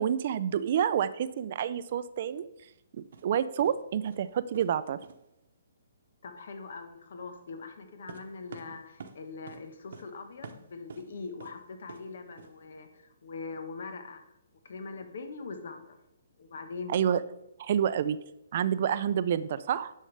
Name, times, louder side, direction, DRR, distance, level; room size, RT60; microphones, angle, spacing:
voice 1, 0.0-2.5 2.9-5.0 16.9-17.2 17.6-18.2 18.5-19.9, right 9 dB, 45° right, 14 dB, 0.4 m, -28 dB
sound 1, 3.1-3.2 3.6-3.8 4.1-4.3 4.5-4.8 5.0-5.2 8.1-9.2 9.5-9.6 9.9-10.1 10.4-11.1 11.4-11.5 11.9-12.0 12.4-12.5, right 5 dB, 65° right, 0.9 m, -46 dB
voice 2, 6.2-14.2 14.6-16.0 16.4-16.9, left 4 dB, 65° left, 7 dB, 1.2 m, -42 dB
10.0 x 6.4 x 3.3 m, 0.88 s
hypercardioid pair, 160°, 0 cm